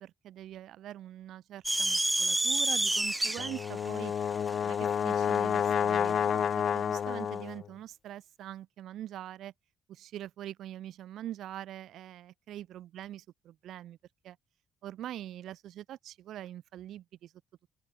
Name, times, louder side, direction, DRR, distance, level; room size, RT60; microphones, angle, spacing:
voice 1, 0.0-4.1 4.6-9.5 9.9-14.0 14.2-14.4 14.8-17.3, right 12 dB, 80° right, 3.3 m, -43 dB
sound 1, 1.6-6.2, right 1 dB, 10° right, 4.7 m, -30 dB
Brass instrument, 3.4-7.6, left 8 dB, 55° left, 0.4 m, -29 dB
open air
cardioid pair, 90°, 0 cm